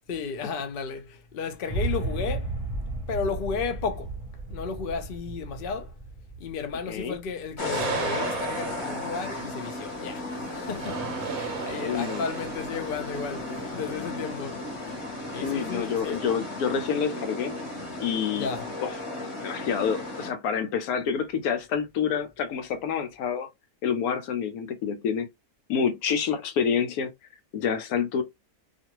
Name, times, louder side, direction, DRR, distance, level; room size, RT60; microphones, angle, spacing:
voice 1, 0.1-2.5 3.1-4.1 4.5-5.9 6.4-14.6 15.3-16.2 18.3-18.7, left 5 dB, 55° left, 0.6 m, -33 dB
sound 1, 1.7-7.8, right 2 dB, 30° right, 0.8 m, -34 dB
voice 2, 6.9-7.2 11.8-12.3 15.4-17.6 18.0-18.5 18.8-18.9 19.4-23.5 23.8-25.3 25.7-27.1 27.5-28.2, left 7 dB, 75° left, 1.1 m, -28 dB
sound 2, 7.6-20.3, left 2 dB, 25° left, 0.9 m, -35 dB
sound 3, 7.6-14.1, right 7 dB, 75° right, 1.0 m, -36 dB
2.5 x 2.5 x 2.9 m
omnidirectional pair, 1.6 m